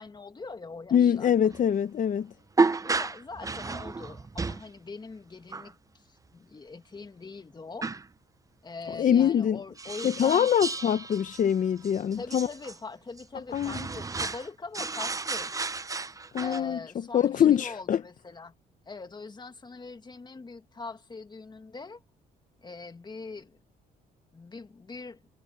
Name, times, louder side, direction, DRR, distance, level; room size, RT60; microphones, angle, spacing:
voice 1, 0.0-1.5 2.8-7.9 8.6-10.5 12.1-15.5 16.4-18.5 18.9-22.0 22.6-23.6 24.3-25.2, left 3 dB, 25° left, 2.0 m, -42 dB
voice 2, 0.9-2.3 8.9-9.6 10.0-12.5 13.5-13.9 16.3-16.8 17.1-18.0, left 9 dB, 50° left, 0.9 m, -24 dB
sound 1, 1.5-1.6 2.6-4.7 5.5-5.7 7.8-8.1 9.8-12.8 13.2-13.3 13.5-14.5 14.7-16.6, right 3 dB, 20° right, 0.7 m, -32 dB
cardioid pair, 85°, 17 cm